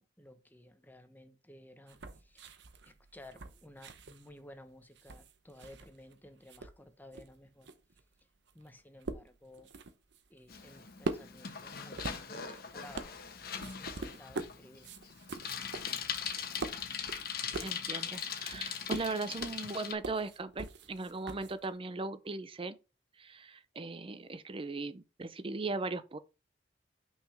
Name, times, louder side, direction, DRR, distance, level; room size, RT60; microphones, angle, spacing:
voice 1, 0.0-2.5 2.8-7.7 8.5-9.7 10.3-13.1 13.8-14.9, left 1 dB, 10° left, 0.9 m, -55 dB
sound 1, 1.9-6.1 6.4-21.8, right 3 dB, 65° right, 0.8 m, -44 dB
Bicycle, 10.5-19.9, left 7 dB, 55° left, 1.2 m, -40 dB
voice 2, 17.6-22.8 23.2-26.2, right 3 dB, 30° right, 0.6 m, -38 dB
5.9 x 5.6 x 3.4 m
head